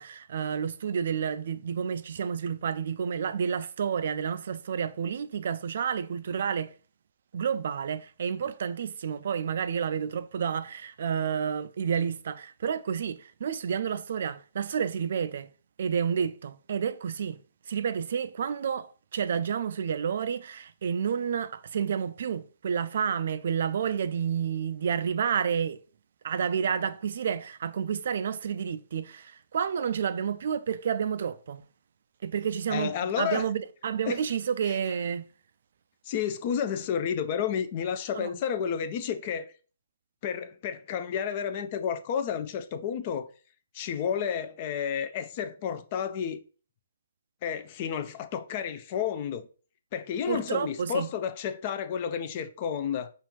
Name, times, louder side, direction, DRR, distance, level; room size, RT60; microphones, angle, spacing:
voice 1, 0.0-6.7 7.3-15.5 15.8-17.4 17.7-25.8 26.2-31.6 32.2-35.3 38.1-38.3 50.3-51.1, right 7 dB, 60° right, 0.3 m, -30 dB
voice 2, 32.7-33.4 34.0-34.2 36.1-39.5 40.2-43.3 43.7-46.4 47.4-49.5 49.9-53.1, left 8 dB, 40° left, 0.4 m, -31 dB
5.5 x 2.5 x 3.0 m
hypercardioid pair, 135°, 0 cm